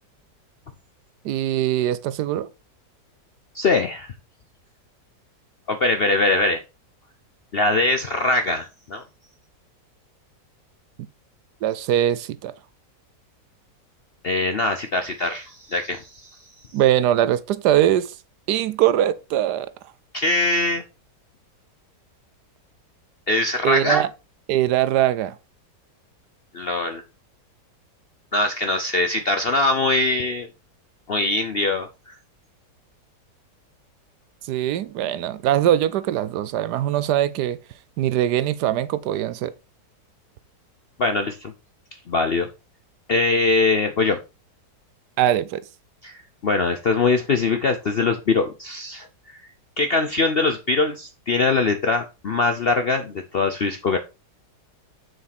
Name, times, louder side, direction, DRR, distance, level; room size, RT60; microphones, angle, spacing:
voice 1, 1.2-2.5 11.6-12.5 16.7-18.1 18.5-19.7 23.6-24.1 24.5-25.4 34.4-37.6 38.0-39.5 45.2-45.6, right 12 dB, 75° right, 1.2 m, -21 dB
voice 2, 3.5-4.1 5.7-6.6 7.5-9.0 14.2-16.3 20.1-20.8 23.3-24.1 26.5-27.0 28.3-30.5 31.1-32.2 41.0-41.5 42.1-42.5 43.1-44.2 46.0-49.5 49.8-54.0, left 3 dB, 55° left, 0.6 m, -22 dB
7.1 x 6.5 x 4.2 m
omnidirectional pair, 1.8 m